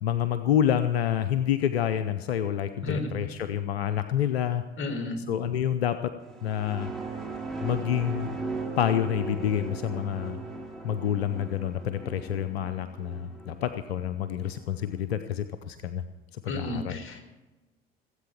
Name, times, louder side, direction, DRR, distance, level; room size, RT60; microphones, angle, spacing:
voice 1, 0.0-4.6 5.2-6.1 6.4-6.9 7.6-8.4 8.8-10.4 10.8-16.0 16.4-17.0, left 10 dB, 85° left, 11 dB, 0.7 m, -28 dB
voice 2, 4.8-5.2 16.5-17.2, left 2 dB, 40° left, 6 dB, 4.1 m, -32 dB
sound 1, 6.2-14.9, right 3 dB, ahead, 4.8 m, -38 dB
17.5 x 8.5 x 8.6 m, 1.1 s
hypercardioid pair, 60°, 30 cm